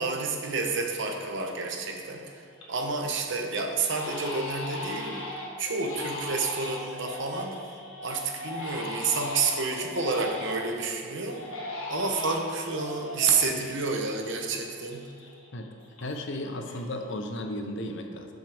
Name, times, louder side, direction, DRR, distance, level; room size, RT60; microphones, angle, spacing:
voice 1, 0.0-5.3 5.6-7.5 8.0-11.4 11.9-15.1, right 4 dB, 60° right, 2 dB, 1.0 m, -29 dB
Crying sobbing, 1.3-1.7 2.1-3.0 3.3-3.4 3.9-10.8 11.3-14.6 14.9-16.4 16.6-17.2, left 1 dB, 75° left, 1.6 m, -38 dB
voice 2, 15.5-18.3, left 1 dB, 60° left, 4 dB, 0.8 m, -35 dB
12.0 x 6.2 x 3.5 m, 2.4 s
head